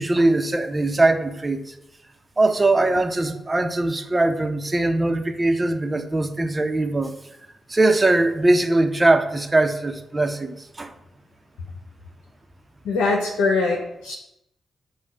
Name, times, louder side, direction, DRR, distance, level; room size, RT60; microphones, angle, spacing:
voice 1, 0.0-1.7 2.4-7.1 7.7-10.9, right 2 dB, 25° right, 6 dB, 0.9 m, -21 dB
voice 2, 12.8-14.1, left 3 dB, 85° left, 1 dB, 0.9 m, -22 dB
7.2 x 2.4 x 5.5 m, 0.84 s
hypercardioid pair, 40°, 0 cm